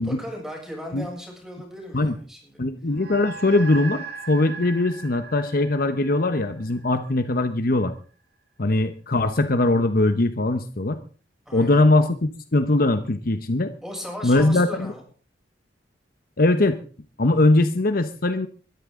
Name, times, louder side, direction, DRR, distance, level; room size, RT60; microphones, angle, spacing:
voice 1, 0.0-2.6 11.5-11.8 13.8-15.0, equal, 5° right, 0 dB, 7.1 m, -37 dB
voice 2, 2.6-7.9 8.6-11.0 11.5-12.1 12.5-13.7 14.2-14.9 16.4-16.8 17.2-18.5, left 2 dB, 50° left, 10 dB, 1.0 m, -21 dB
sound 1, 2.9-7.6, right 5 dB, 60° right, 3.9 m, -39 dB
21.5 x 13.5 x 3.8 m, 0.40 s
head